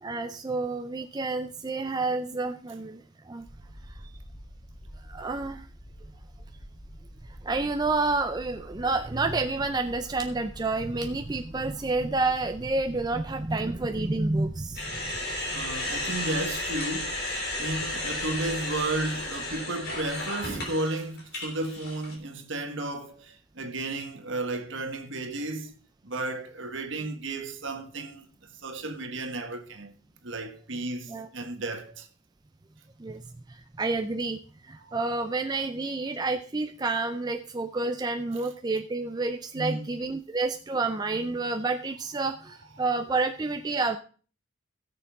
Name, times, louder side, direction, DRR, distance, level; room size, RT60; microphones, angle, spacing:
voice 1, 0.0-3.4 5.1-5.6 7.4-14.8 15.4-15.8 31.1-31.3 33.0-33.2 33.5-34.4 34.6-44.0, right 3 dB, 20° right, 0.4 m, -29 dB
sound 1, 3.4-19.5, equal, 65° left, 3.6 m, -47 dB
sound 2, 14.8-22.2, left 1 dB, 45° left, 3.2 m, -33 dB
voice 2, 15.5-25.7 26.0-29.9 30.2-32.1 34.8-34.9 39.5-40.0, right 2 dB, 60° right, 1.5 m, -33 dB
16.5 x 6.8 x 3.6 m
head